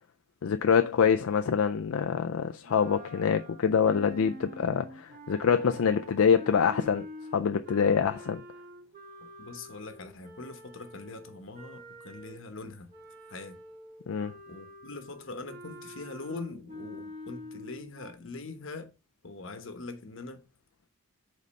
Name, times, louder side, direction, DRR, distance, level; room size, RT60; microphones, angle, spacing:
voice 1, 0.4-7.1 7.3-8.4 14.1-14.3, left 6 dB, 80° left, 0.4 m, -25 dB
sound 1, 2.6-12.5 12.9-18.1, left 1 dB, 35° right, 1.6 m, -46 dB
voice 2, 9.4-12.9 13.3-13.6 14.5-18.9 19.2-20.4, left 3 dB, 65° left, 1.0 m, -42 dB
5.2 x 4.0 x 5.3 m
head